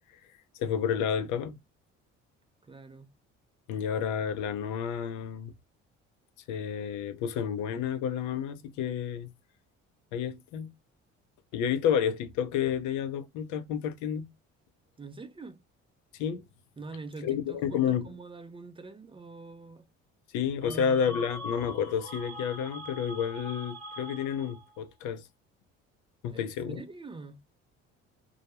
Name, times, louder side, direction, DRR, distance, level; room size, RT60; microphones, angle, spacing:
voice 1, 0.6-1.5 3.7-5.5 6.5-9.3 10.1-10.7 11.5-14.3 16.2-16.4 17.2-18.1 20.3-25.2 26.2-26.8, left 8 dB, 75° left, 0.6 m, -30 dB
voice 2, 2.6-3.1 15.0-15.6 16.8-19.9 20.6-21.2 26.3-27.4, right 3 dB, 20° right, 0.4 m, -44 dB
sound 1, 20.6-24.8, equal, 5° left, 1.0 m, -42 dB
2.3 x 2.1 x 2.8 m
supercardioid pair, 75°, 30 cm